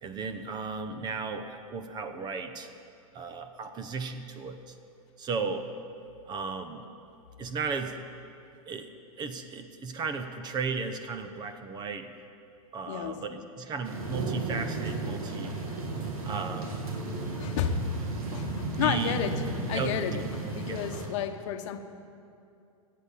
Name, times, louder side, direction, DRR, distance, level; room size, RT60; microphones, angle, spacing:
voice 1, 0.0-2.7 3.1-4.8 5.2-5.7 6.3-6.8 7.4-8.0 8.7-8.9 9.2-12.1 12.7-15.6 16.2-16.9 18.7-19.2 19.7-20.2 20.7-20.8, right 4 dB, 25° right, 8 dB, 0.8 m, -35 dB
voice 2, 12.9-13.2 15.3-15.4 17.3-17.8 18.3-19.4 19.7-21.8, left 10 dB, 55° left, 8 dB, 1.0 m, -32 dB
sound 1, 13.8-21.1, right 3 dB, 80° right, 2.5 m, -34 dB
16.0 x 8.6 x 7.3 m, 2.6 s
hypercardioid pair, 135°, 18 cm